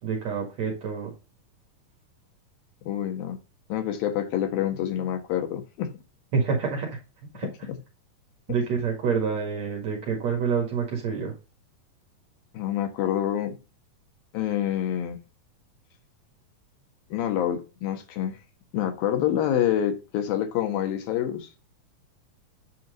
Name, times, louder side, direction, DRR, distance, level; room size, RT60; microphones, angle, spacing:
voice 1, 0.0-1.1 6.3-6.9 7.3-7.5 8.5-11.3, right 5 dB, 55° right, 2.9 m, -27 dB
voice 2, 2.8-3.4 3.7-5.9 7.4-7.8 12.5-13.6 14.3-15.2 17.1-18.4 18.7-21.5, left 10 dB, 80° left, 3.1 m, -27 dB
8.5 x 4.5 x 3.9 m
omnidirectional pair, 4.0 m